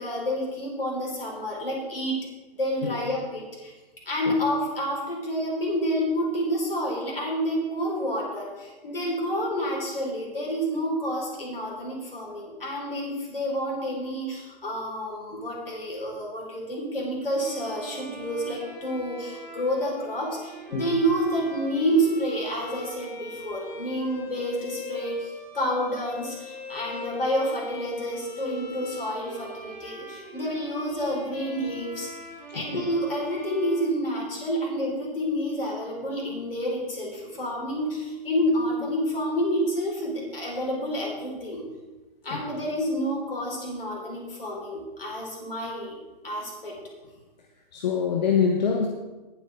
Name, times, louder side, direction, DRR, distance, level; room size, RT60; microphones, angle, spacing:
voice 1, 0.0-2.3 2.6-3.7 4.0-32.1 32.5-41.7 42.2-46.0 46.2-46.8, equal, 70° left, -2 dB, 5.0 m, -29 dB
Bowed string instrument, 17.4-34.6, equal, 5° left, 4.4 m, -41 dB
voice 2, 47.7-48.9, left 6 dB, 45° left, 3 dB, 1.3 m, -25 dB
19.0 x 8.2 x 3.8 m, 1.2 s
figure-of-eight pair, 125°, 30 cm